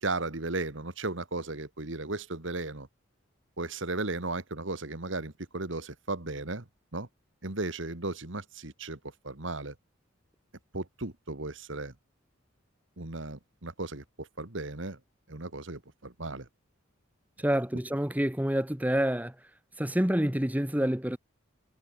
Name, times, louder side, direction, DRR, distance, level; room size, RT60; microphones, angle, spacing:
voice 1, 0.0-2.9 3.6-7.1 7.4-9.0 9.2-9.7 10.7-11.9 13.0-15.0 15.3-16.5, right 2 dB, 70° right, 2.2 m, -35 dB
voice 2, 17.4-19.3 19.8-21.2, equal, 10° right, 1.1 m, -27 dB
head